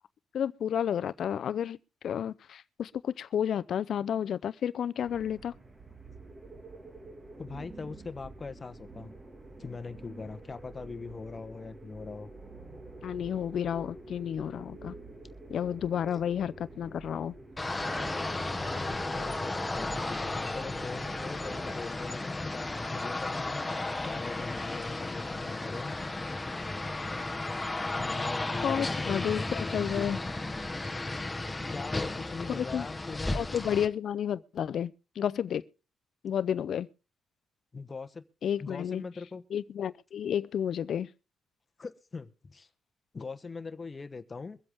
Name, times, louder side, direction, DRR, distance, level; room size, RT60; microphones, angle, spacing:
voice 1, 0.3-1.8 2.0-5.5 13.0-14.9 15.5-17.3 28.6-30.2 32.5-32.9 33.3-35.6 36.2-36.9 38.4-39.0 39.5-41.1, left 9 dB, 60° left, 0.6 m, -31 dB
sound 1, 5.0-21.8, right 2 dB, 25° right, 1.9 m, -47 dB
voice 2, 7.4-9.1 9.6-12.3 18.6-23.7 24.0-26.0 27.9-30.3 31.7-33.5 37.7-38.2 38.6-39.4 41.8-42.7 43.1-44.6, left 4 dB, 30° left, 1.0 m, -41 dB
sound 2, 17.6-33.9, left 2 dB, 15° left, 1.2 m, -34 dB
23.0 x 7.8 x 3.6 m
cardioid pair, 90°, 0 cm